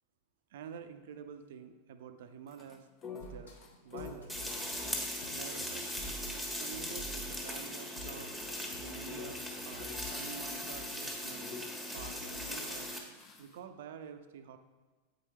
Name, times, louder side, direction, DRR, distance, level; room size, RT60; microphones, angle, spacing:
voice 1, 0.5-2.9 3.1-3.5 3.8-4.4 5.3-6.0 6.3-8.4 8.8-11.4 11.9-12.9 13.4-14.6, right 8 dB, 55° right, 9 dB, 0.6 m, -48 dB
sound 1, 2.5-11.8 13.0-13.6, left 6 dB, 25° left, 0.8 m, -51 dB
sound 2, 3.2-12.7, equal, 65° left, 1.2 m, -50 dB
sound 3, 4.3-13.0, left 1 dB, 5° left, 1.3 m, -39 dB
8.2 x 4.8 x 4.5 m, 1.3 s
figure-of-eight pair, 90°, 0 cm